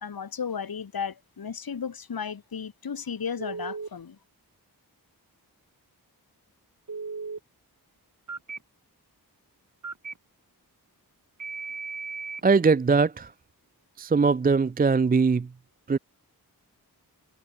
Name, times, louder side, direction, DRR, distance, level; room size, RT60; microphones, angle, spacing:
voice 1, 0.0-4.2, left 6 dB, 65° left, 1.4 m, -34 dB
Telephone, 3.4-3.9 6.9-7.4 8.3-8.6 9.8-10.1 11.4-12.4, right 4 dB, 50° right, 2.4 m, -36 dB
voice 2, 12.4-13.3 14.0-15.5 15.9-16.0, right 4 dB, 25° right, 0.4 m, -21 dB
wide cardioid pair, 65°, 39 cm